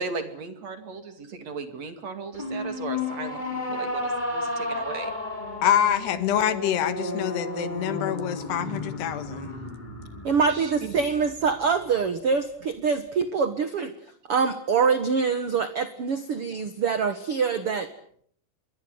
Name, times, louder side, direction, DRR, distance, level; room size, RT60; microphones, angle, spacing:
voice 1, 0.0-5.1 10.5-11.0, right 4 dB, 45° right, 9 dB, 3.0 m, -36 dB
sound 1, 2.3-11.7, left 2 dB, 10° left, 4.2 m, -33 dB
voice 2, 5.6-9.5, left 10 dB, 80° left, 12 dB, 3.7 m, -26 dB
voice 3, 10.2-13.9 14.3-17.9, right 5 dB, 75° right, 11 dB, 1.3 m, -25 dB
26.0 x 22.5 x 7.9 m, 0.63 s
omnidirectional pair, 4.8 m